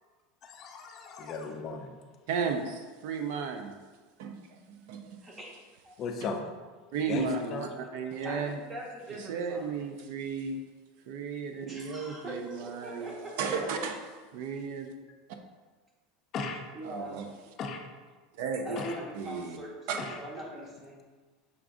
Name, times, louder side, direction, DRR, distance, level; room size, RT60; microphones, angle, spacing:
voice 1, 0.4-1.9 6.0-6.5 7.1-7.7 16.3-16.6 17.6-17.8 18.8-19.0 20.0-20.2, left 4 dB, 30° left, 4 dB, 0.4 m, -36 dB
voice 2, 2.3-3.7 4.2-5.2 6.9-8.6 9.2-10.6 11.1-13.1 13.4-14.0 14.3-14.9 16.9-17.3 18.4-18.9 19.1-19.6 19.9-20.0, right 5 dB, 55° right, 5 dB, 0.4 m, -34 dB
voice 3, 5.2-5.5 5.8-5.9 7.2-7.3 8.2-9.7 11.6-13.9 16.7-17.2 18.6-21.0, right 1 dB, 15° right, -1 dB, 0.7 m, -42 dB
5.9 x 2.5 x 3.6 m, 1.4 s
supercardioid pair, 175°, 0 cm